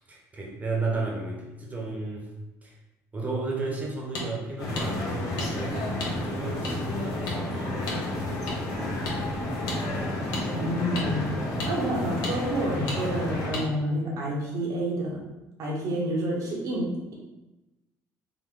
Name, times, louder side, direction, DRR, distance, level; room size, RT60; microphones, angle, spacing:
voice 1, 0.0-2.3 2.6-2.8 3.1-8.0 8.5-8.7, right 3 dB, 20° right, -2 dB, 1.1 m, -34 dB
sound 1, 4.1-4.3 4.8-4.9 5.4-5.5 6.0-6.1 6.6-6.7 7.3-7.4 7.9-8.0 8.5-8.6 9.0-9.2 9.7-9.8 10.3-10.4 10.9-11.1 11.6-11.7 12.2-12.4 12.9-13.0 13.5-13.7, left 2 dB, 80° left, 1.0 m, -32 dB
sound 2, 4.6-13.5, left 1 dB, 55° left, 1.1 m, -31 dB
voice 2, 10.5-11.3 11.6-15.2 15.6-17.1, right 1 dB, 65° right, -4 dB, 1.2 m, -29 dB
3.9 x 2.1 x 3.8 m, 1.0 s
cardioid pair, 90°, 7 cm